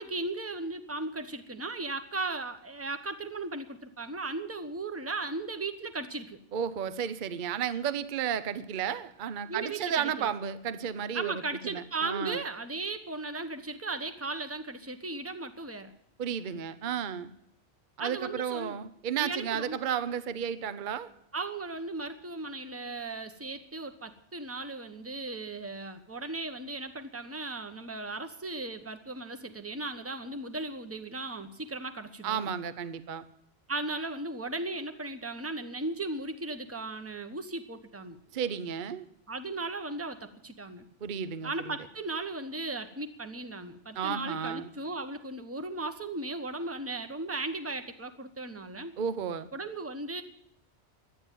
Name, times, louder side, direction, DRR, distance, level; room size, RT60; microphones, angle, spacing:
voice 1, 0.0-6.4 9.5-10.3 11.1-15.9 18.0-18.8 19.2-19.8 21.3-32.5 33.7-38.2 39.3-40.8 41.4-48.9 49.5-50.2, right 2 dB, 15° right, 8 dB, 0.9 m, -36 dB
voice 2, 6.5-11.3 11.6-12.4 16.2-17.3 18.0-21.1 32.2-33.2 38.3-39.0 41.0-41.8 43.9-44.7 49.0-49.5, right 8 dB, 50° right, 14 dB, 0.8 m, -33 dB
12.0 x 9.2 x 9.1 m, 0.74 s
omnidirectional pair, 1.2 m